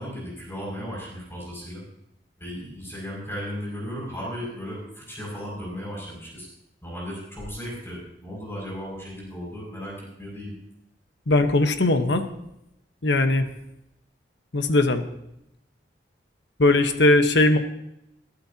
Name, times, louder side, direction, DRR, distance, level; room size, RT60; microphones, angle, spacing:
voice 1, 0.0-1.8 2.4-6.5 6.8-10.6, equal, 15° left, -4 dB, 6.4 m, -35 dB
voice 2, 11.3-12.2 13.0-13.5 14.5-15.0 16.6-17.6, left 2 dB, 70° left, 7 dB, 1.2 m, -19 dB
22.0 x 12.5 x 2.9 m, 0.81 s
head